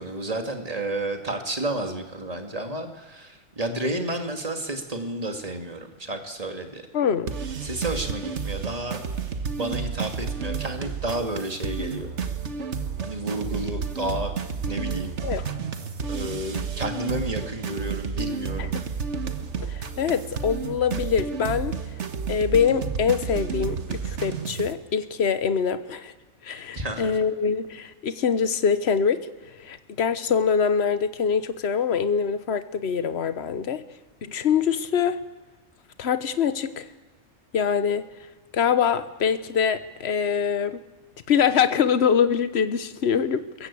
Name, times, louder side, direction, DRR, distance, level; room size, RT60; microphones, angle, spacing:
voice 1, 0.0-6.9 7.6-9.0 9.6-12.1 13.0-14.3 14.7-15.1 16.1-18.7 26.7-27.2, right 1 dB, 25° right, 5 dB, 2.4 m, -31 dB
voice 2, 6.9-7.4 15.2-15.4 18.6-18.8 19.6-21.8 22.3-26.1 26.4-29.3 29.6-33.8 34.2-35.2 36.0-36.9 37.5-38.1 38.5-40.8 41.3-43.7, left 7 dB, 50° left, 12 dB, 1.3 m, -24 dB
sound 1, 7.3-24.7, right 6 dB, 55° right, 1.7 m, -31 dB
24.0 x 22.0 x 8.5 m, 1.2 s
omnidirectional pair, 1.5 m